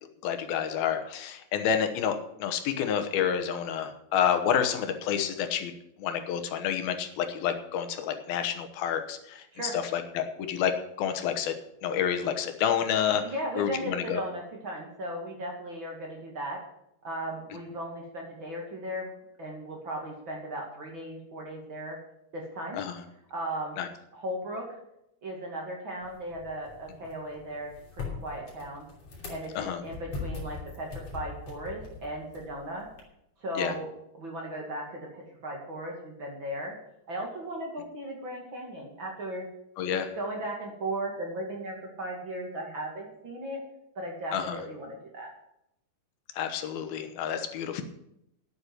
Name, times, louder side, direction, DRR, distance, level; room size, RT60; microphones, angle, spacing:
voice 1, 0.2-5.7 6.0-10.7 11.0-11.5 11.8-13.2 13.6-14.2 22.7-23.0 23.8-23.9 29.6-29.8 33.6-33.7 39.8-40.1 44.3-44.6 46.4-47.8, left 8 dB, 85° left, 8 dB, 3.0 m, -29 dB
voice 2, 13.2-16.6 17.0-19.1 19.4-22.0 22.3-22.8 23.3-23.8 24.1-24.7 25.2-28.9 29.3-32.9 33.4-36.7 37.1-39.5 39.9-43.6 44.0-45.3, right 1 dB, 35° right, 0 dB, 2.6 m, -37 dB
sound 1, 26.0-33.0, left 4 dB, 45° left, 3.9 m, -42 dB
9.9 x 8.7 x 7.8 m, 0.80 s
omnidirectional pair, 4.2 m